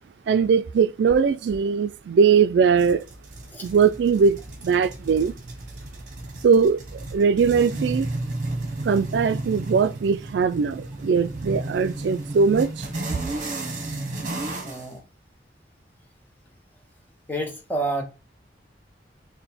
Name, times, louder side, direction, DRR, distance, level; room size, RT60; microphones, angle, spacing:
voice 1, 0.3-3.0 3.6-5.3 6.4-6.8 7.1-8.1 8.8-12.9, right 6 dB, 75° right, 0.3 m, -20 dB
sound 1, 2.8-14.9, right 2 dB, 45° right, 1.0 m, -33 dB
voice 2, 14.6-15.0 17.3-18.0, right 2 dB, 10° left, 0.8 m, -29 dB
4.0 x 2.1 x 4.0 m
head